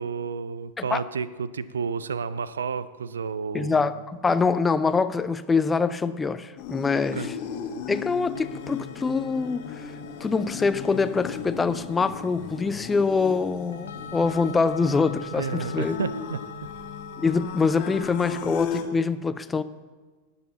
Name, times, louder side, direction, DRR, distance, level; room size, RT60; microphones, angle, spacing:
voice 1, 0.0-3.9 7.1-7.3 15.3-16.4, right 6 dB, 70° right, 0.4 m, -31 dB
voice 2, 3.5-7.3 7.9-9.9 10.2-16.0 17.2-19.6, left 4 dB, 15° left, 0.4 m, -24 dB
sound 1, 6.6-18.8, left 7 dB, 45° left, 1.1 m, -36 dB
sound 2, 8.3-18.4, left 7 dB, 65° left, 0.8 m, -42 dB
18.0 x 6.9 x 3.9 m
figure-of-eight pair, 90°, 0 cm